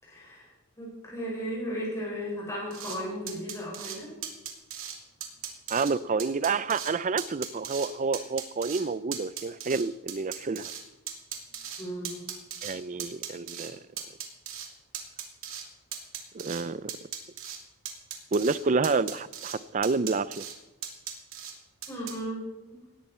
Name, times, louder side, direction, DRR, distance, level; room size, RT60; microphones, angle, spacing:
voice 1, 0.0-0.5 0.8-4.1 11.8-12.2 21.9-22.8, equal, 15° left, -6 dB, 5.5 m, -35 dB
sound 1, 2.7-3.0 3.3-4.0 4.2-5.0 5.2-5.9 6.2-6.9 7.2-7.9 8.1-8.8 9.1-10.8 11.1-12.7 13.0-13.7 14.0-14.7 14.9-15.6 15.9-16.6 16.9-17.6 17.9-18.6 18.8-19.6 19.8-20.5 20.8-21.5 21.8-22.1, right 9 dB, 60° right, 2.7 m, -37 dB
voice 2, 5.7-10.7 12.6-13.8 16.3-16.9 18.3-20.4, right 4 dB, 35° right, 17 dB, 0.4 m, -29 dB
19.0 x 14.0 x 4.4 m, 1.1 s
head